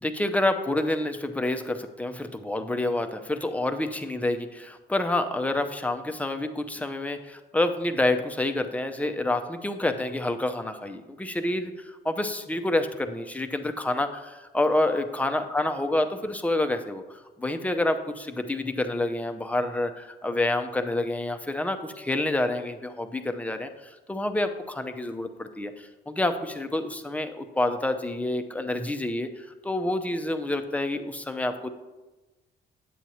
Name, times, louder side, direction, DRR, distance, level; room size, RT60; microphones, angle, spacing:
voice 1, 0.0-31.7, left 1 dB, 5° left, 6 dB, 0.6 m, -28 dB
8.3 x 7.4 x 2.8 m, 1.1 s
cardioid pair, 90°, 20 cm